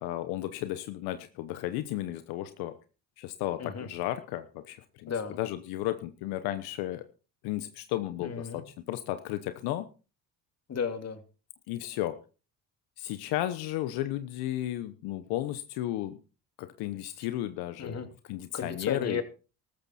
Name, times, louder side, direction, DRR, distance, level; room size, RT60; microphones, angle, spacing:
voice 1, 0.0-2.7 3.2-7.0 7.4-9.9 11.7-12.2 13.0-16.2 16.6-19.2, left 14 dB, 85° left, 11 dB, 1.0 m, -34 dB
voice 2, 5.1-5.4 8.2-8.6 10.7-11.2 17.8-18.1 18.5-19.2, left 6 dB, 45° left, 8 dB, 2.7 m, -34 dB
13.5 x 13.5 x 4.3 m, 0.35 s
supercardioid pair, 75°, 37 cm